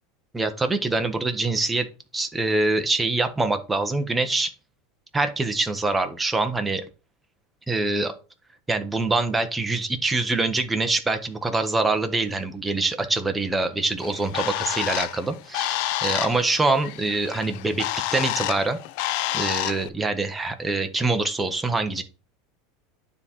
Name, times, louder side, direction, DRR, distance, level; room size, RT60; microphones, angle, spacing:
voice 1, 0.3-1.9 2.1-4.5 5.1-6.8 7.7-8.1 8.7-18.8 19.3-22.0, right 3 dB, 5° right, 7 dB, 0.7 m, -24 dB
Bird, 14.0-19.9, left 15 dB, 55° left, 0.4 m, -29 dB
9.6 x 3.6 x 4.2 m, 0.34 s
supercardioid pair, 170°, 0 cm